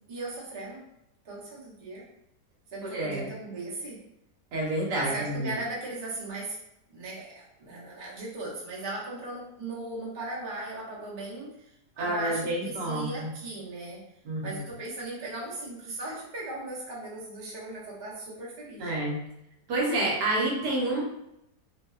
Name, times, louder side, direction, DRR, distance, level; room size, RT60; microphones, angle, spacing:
voice 1, 0.1-0.8 1.2-2.0 2.7-4.0 4.9-6.6 6.9-11.7 12.0-14.0 14.4-19.0, right 2 dB, 45° right, -7 dB, 0.6 m, -37 dB
voice 2, 2.8-3.3 4.5-5.5 12.0-13.3 14.2-14.6 18.8-19.2 19.7-21.0, right 1 dB, 75° right, -3 dB, 1.3 m, -29 dB
2.8 x 2.1 x 2.2 m, 0.82 s
omnidirectional pair, 1.8 m